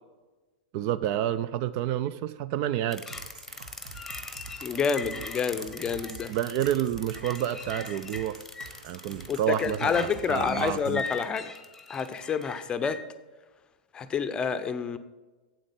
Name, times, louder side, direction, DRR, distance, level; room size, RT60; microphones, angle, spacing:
voice 1, 0.7-3.0 6.3-8.4 8.8-11.0, right 11 dB, 45° right, 16 dB, 0.4 m, -29 dB
sound 1, 2.9-13.0, left 3 dB, 5° left, 1.2 m, -40 dB
sound 2, 3.1-11.1, right 4 dB, 65° right, 1.4 m, -47 dB
voice 2, 4.6-6.3 9.3-11.5 11.9-13.0 13.9-15.0, left 6 dB, 20° left, 11 dB, 0.6 m, -28 dB
9.0 x 7.7 x 5.3 m, 1.2 s
figure-of-eight pair, 100°, 4 cm